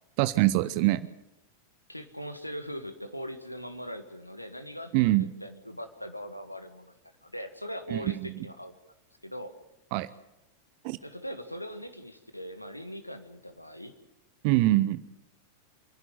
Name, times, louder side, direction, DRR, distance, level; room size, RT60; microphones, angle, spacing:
voice 1, 0.2-1.1 4.9-5.3 7.9-8.4 9.9-10.1 10.8-11.0 14.4-15.0, right 17 dB, 45° right, 16 dB, 0.7 m, -24 dB
voice 2, 1.9-5.1 5.4-7.0 7.2-8.7 9.2-9.5 11.0-13.9, equal, 90° left, 9 dB, 1.8 m, -40 dB
28.0 x 11.0 x 9.5 m, 0.90 s
figure-of-eight pair, 90°, 0 cm